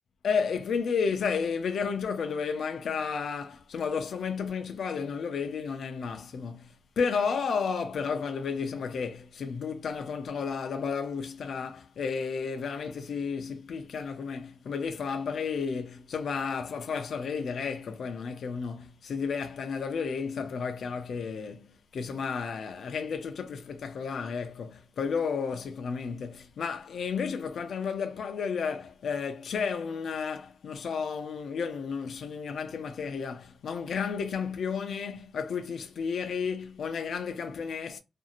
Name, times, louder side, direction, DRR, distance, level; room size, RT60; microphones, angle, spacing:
voice 1, 0.2-38.0, left 6 dB, 80° left, 0.4 m, -32 dB
2.5 x 2.3 x 2.8 m
wide cardioid pair, 125°, 0 cm